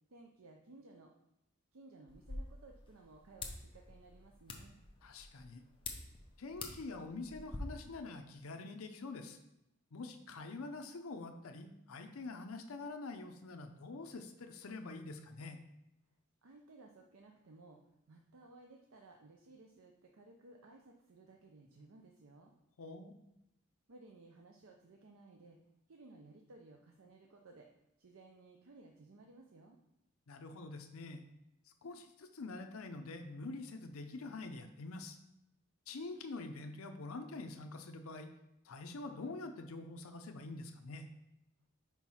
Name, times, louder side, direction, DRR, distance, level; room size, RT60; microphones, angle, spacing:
voice 1, 0.1-1.1 1.7-4.8 16.4-17.8 18.1-22.5 23.9-25.6 25.9-27.7 28.0-29.8, right 3 dB, 75° right, 2 dB, 0.6 m, -58 dB
sound 1, 2.1-7.6, left 3 dB, 25° left, 0.7 m, -48 dB
voice 2, 5.0-5.6 6.4-9.4 9.9-15.6 22.8-23.1 30.3-31.2 31.8-35.2 35.9-38.3 38.6-41.1, left 3 dB, 80° left, 6 dB, 0.6 m, -46 dB
4.6 x 4.5 x 5.6 m, 0.88 s
head